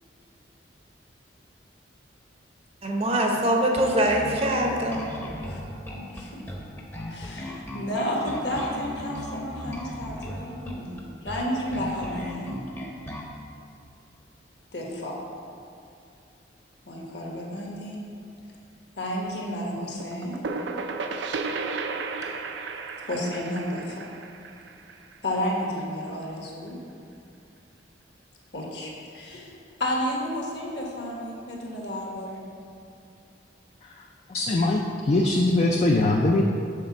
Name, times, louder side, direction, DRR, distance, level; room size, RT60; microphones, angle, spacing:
voice 1, 2.8-5.0, right 1 dB, 30° right, 1 dB, 0.7 m, -23 dB
Bass guitar, 3.8-13.3, left 1 dB, 10° left, 0.7 m, -37 dB
voice 2, 6.1-6.5 7.1-12.6 14.7-15.1 16.9-18.0 19.0-20.4 23.0-24.1 25.2-26.8 28.5-29.5 29.8-32.4, equal, 60° left, -2 dB, 1.3 m, -31 dB
sound 1, 20.0-25.6, right 4 dB, 65° right, 0.4 m, -33 dB
voice 3, 34.3-36.4, left 2 dB, 35° left, 0 dB, 0.4 m, -22 dB
6.6 x 4.2 x 5.8 m, 2.5 s
head